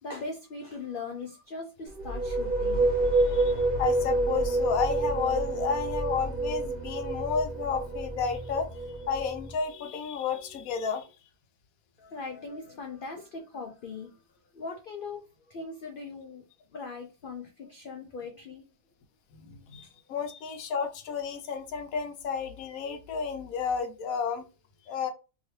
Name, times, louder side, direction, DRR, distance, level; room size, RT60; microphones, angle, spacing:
voice 1, 0.0-2.9 12.0-14.2 14.5-16.4 16.7-18.7 19.4-19.7, left 4 dB, 60° left, 3 dB, 0.5 m, -40 dB
sound 1, 1.9-9.5, right 2 dB, 40° right, 1.1 m, -28 dB
sound 2, 2.7-9.5, equal, 10° right, 0.8 m, -43 dB
voice 2, 3.2-11.1 19.3-24.5 24.9-25.1, left 6 dB, 90° left, 8 dB, 1.1 m, -32 dB
2.9 x 2.8 x 3.1 m, 0.31 s
omnidirectional pair, 1.4 m